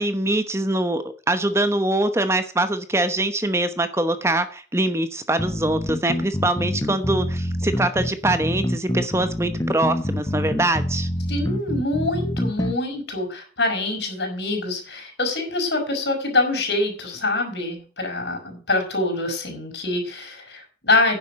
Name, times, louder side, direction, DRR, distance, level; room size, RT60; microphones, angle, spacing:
voice 1, 0.0-11.1, right 1 dB, 15° right, 10 dB, 0.9 m, -23 dB
sound 1, 5.4-12.8, left 1 dB, 20° left, 0.9 m, -26 dB
voice 2, 11.3-21.2, left 2 dB, 80° left, 2 dB, 5.6 m, -25 dB
10.5 x 7.2 x 7.9 m, 0.40 s
head